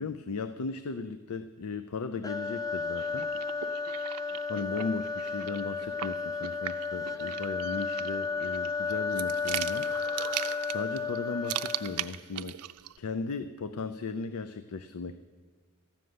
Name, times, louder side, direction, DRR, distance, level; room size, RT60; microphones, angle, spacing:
voice 1, 0.0-3.3 4.5-9.9 10.7-12.5 13.0-15.2, left 4 dB, 80° left, 11 dB, 0.5 m, -36 dB
sound 1, 2.2-12.2, left 4 dB, 15° left, 0.5 m, -33 dB
sound 2, 2.9-13.0, right 13 dB, 90° right, 0.4 m, -39 dB
13.5 x 6.5 x 9.4 m, 1.5 s
head